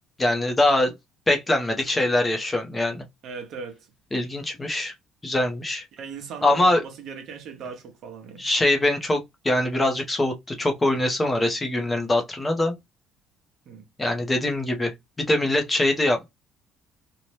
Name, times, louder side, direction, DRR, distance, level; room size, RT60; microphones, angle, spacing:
voice 1, 0.2-0.9 1.3-3.0 4.1-4.9 5.2-5.8 6.4-6.8 8.4-12.7 14.0-16.2, left 1 dB, 15° left, 0.5 m, -23 dB
voice 2, 3.2-3.9 5.9-8.5 13.7-13.9, right 6 dB, 50° right, 0.7 m, -38 dB
2.7 x 2.0 x 3.1 m
cardioid pair, 170°, 0 cm